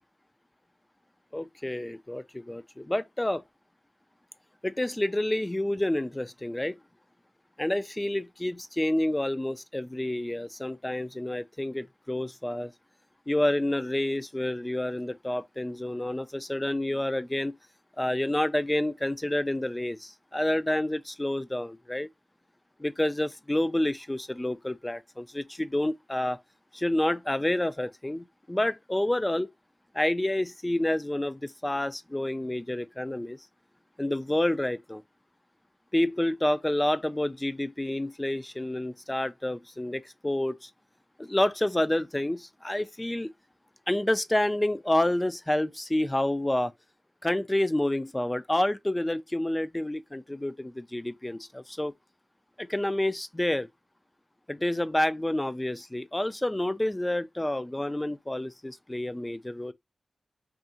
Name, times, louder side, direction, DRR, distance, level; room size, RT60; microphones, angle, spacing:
voice 1, 1.3-3.4 4.6-6.8 7.6-12.7 13.3-17.5 18.0-22.1 22.8-26.4 26.7-29.5 29.9-33.4 34.0-35.0 35.9-40.7 41.2-43.3 43.9-46.7 47.2-51.9 52.6-53.7 54.5-59.7, left 1 dB, 20° left, 0.3 m, -29 dB
2.7 x 2.4 x 2.7 m
cardioid pair, 60°, 0 cm